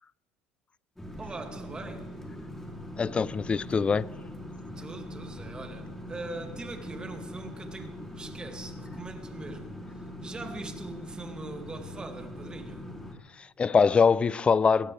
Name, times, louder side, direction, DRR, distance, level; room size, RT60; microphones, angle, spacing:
sound 1, 1.0-13.1, left 1 dB, 5° left, 3.0 m, -42 dB
voice 1, 1.2-2.1 4.8-12.8, right 3 dB, 20° right, 2.3 m, -42 dB
voice 2, 3.0-4.1 13.4-14.9, left 5 dB, 25° left, 0.4 m, -23 dB
21.5 x 17.0 x 3.3 m
cardioid pair, 115°, 5 cm